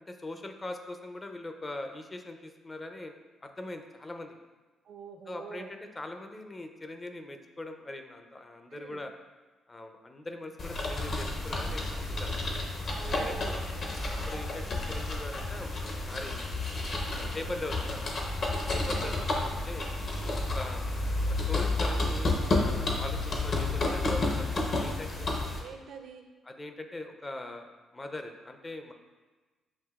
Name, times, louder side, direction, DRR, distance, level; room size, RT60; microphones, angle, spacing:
voice 1, 0.1-3.1 3.4-4.4 5.3-9.1 9.7-12.4 13.1-13.6 14.3-15.7 16.1-16.5 17.1-18.1 18.7-19.9 20.5-20.9 21.3-25.4 26.5-28.9, left 2 dB, 25° left, 6 dB, 0.4 m, -41 dB
voice 2, 4.8-5.7 8.7-9.0 12.9-13.6 13.9-14.1 17.0-17.4 19.0-19.1 25.2-26.3, right 6 dB, 70° right, 5 dB, 0.5 m, -46 dB
sound 1, 10.6-25.6, left 2 dB, 50° left, 0.7 m, -31 dB
7.4 x 2.7 x 2.3 m, 1.2 s
cardioid pair, 90°, 0 cm